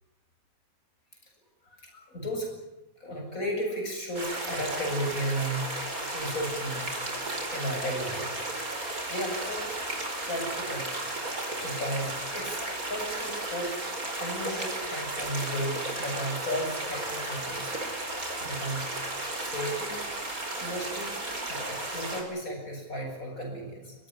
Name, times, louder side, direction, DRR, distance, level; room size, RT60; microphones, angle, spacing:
voice 1, 1.6-2.5 3.0-5.6 6.1-8.6 9.1-9.7 10.2-13.8 14.2-17.9 18.4-18.9 19.4-20.0 20.5-21.1 21.5-23.9, equal, 75° left, 2 dB, 8.2 m, -34 dB
sound 1, 4.1-22.2, right 2 dB, 85° right, 5.1 m, -34 dB
23.5 x 18.5 x 10.0 m, 0.95 s
omnidirectional pair, 1.5 m